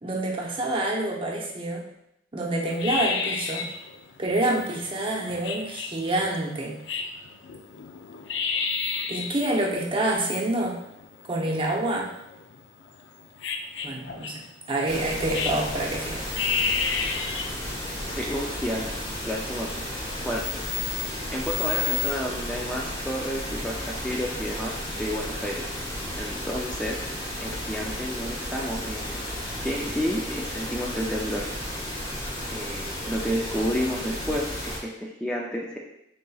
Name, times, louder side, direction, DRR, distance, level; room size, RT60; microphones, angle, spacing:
voice 1, 0.0-1.8 2.3-3.6 4.2-6.8 9.1-10.8 11.3-12.1 13.8-14.4 14.7-16.2, right 1 dB, 30° right, -2 dB, 0.8 m, -27 dB
sound 1, 2.7-22.1, left 6 dB, 85° left, 0.4 m, -32 dB
sound 2, 14.9-34.8, equal, 30° left, 1.1 m, -33 dB
voice 2, 18.2-18.9 19.3-19.7 20.2-20.4 21.3-24.7 25.0-25.6 26.2-27.0 27.4-29.2 29.6-31.5 32.5-35.8, equal, 5° left, -3 dB, 0.4 m, -30 dB
5.3 x 3.7 x 2.3 m, 0.82 s
head